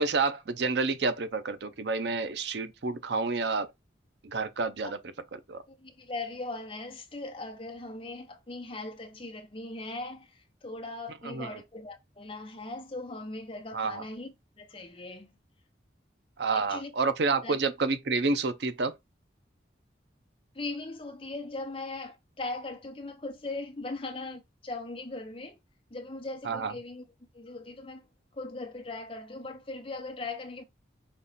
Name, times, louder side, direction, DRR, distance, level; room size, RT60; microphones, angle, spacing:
voice 1, 0.0-3.7 4.2-5.0 5.5-5.6 11.2-11.5 13.7-14.0 16.4-18.9 26.4-26.7, right 4 dB, 65° right, 0.6 m, -29 dB
voice 2, 5.7-15.4 16.5-16.9 17.4-17.6 20.5-25.6 25.9-27.0 27.3-28.1 28.3-30.6, left 2 dB, 30° left, 0.8 m, -39 dB
5.3 x 2.4 x 4.0 m
head